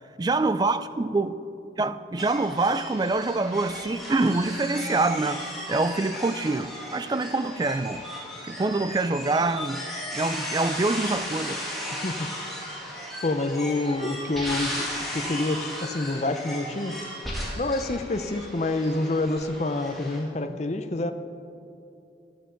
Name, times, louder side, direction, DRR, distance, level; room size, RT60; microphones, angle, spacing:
voice 1, 0.2-1.4 1.8-5.4 5.7-8.0 8.4-9.8 10.1-11.6 20.5-20.6, right 3 dB, 20° right, 0.3 m, -25 dB
sound 1, 2.2-20.2, left 1 dB, ahead, 2.5 m, -35 dB
voice 2, 12.0-12.3 13.2-16.9 17.6-21.1, left 2 dB, 35° left, 0.6 m, -27 dB
13.5 x 12.5 x 3.9 m
head